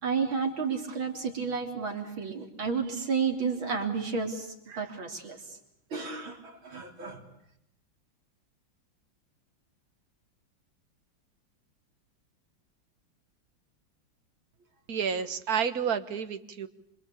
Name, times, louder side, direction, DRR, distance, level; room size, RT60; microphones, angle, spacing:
voice 1, 0.0-5.4 5.9-7.2, right 5 dB, 85° right, 2 dB, 4.6 m, -31 dB
voice 2, 14.9-16.7, right 7 dB, 50° right, 11 dB, 1.8 m, -30 dB
27.0 x 26.0 x 8.5 m, 0.75 s
omnidirectional pair, 2.2 m